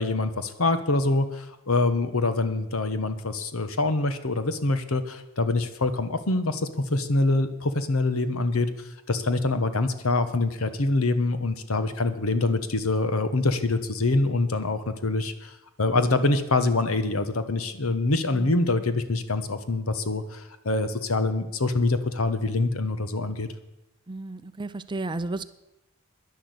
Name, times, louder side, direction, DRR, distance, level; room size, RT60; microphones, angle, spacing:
voice 1, 0.0-6.6 6.9-8.7 9.1-15.5 15.8-23.5, left 2 dB, 80° left, 10 dB, 1.2 m, -25 dB
voice 2, 18.3-18.8 24.1-25.4, right 2 dB, 20° right, 13 dB, 0.5 m, -33 dB
11.0 x 10.5 x 7.9 m, 0.94 s
head